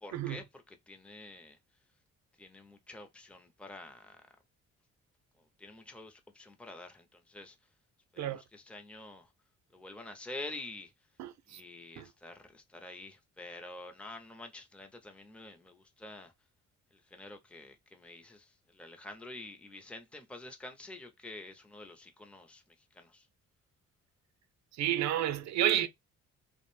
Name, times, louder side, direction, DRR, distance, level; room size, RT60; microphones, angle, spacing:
voice 1, 0.0-1.6 2.4-4.2 5.4-7.6 8.1-9.3 9.7-10.9 11.5-16.3 16.9-23.3, left 2 dB, 5° left, 0.5 m, -48 dB
voice 2, 24.8-25.9, right 12 dB, 65° right, 0.5 m, -30 dB
2.4 x 2.1 x 3.0 m
cardioid pair, 90°, 30 cm